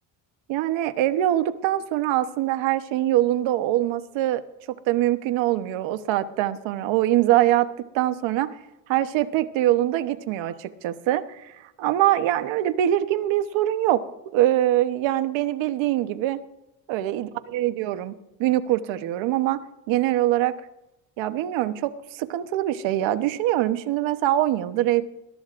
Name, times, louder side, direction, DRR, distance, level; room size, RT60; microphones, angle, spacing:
voice 1, 0.5-4.4 4.9-7.7 7.9-8.5 8.9-14.0 14.3-16.4 16.9-19.6 19.9-20.5 21.2-25.0, right 13 dB, 85° right, 10 dB, 1.1 m, -23 dB
21.5 x 13.5 x 2.6 m, 0.91 s
cardioid pair, 110°, 45 cm